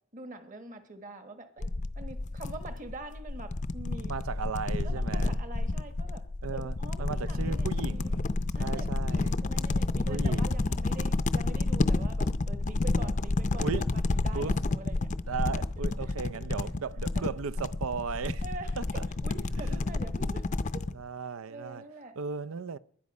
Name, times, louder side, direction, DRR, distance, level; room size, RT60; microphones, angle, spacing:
voice 1, 0.1-1.7 1.9-4.1 4.8-6.2 6.5-8.1 8.5-15.1 16.0-16.5 17.1-17.3 18.4-20.9 21.5-22.2, right 2 dB, 40° right, 1.4 m, -45 dB
sound 1, 1.6-20.9, left 2 dB, 35° left, 0.5 m, -30 dB
voice 2, 4.0-5.4 6.4-8.3 8.6-9.3 10.0-10.7 13.6-13.9 14.3-14.6 15.3-18.4 18.8-19.0 19.6-19.8 20.9-21.8 22.2-22.8, right 5 dB, 85° right, 0.5 m, -36 dB
20.5 x 10.5 x 5.4 m
head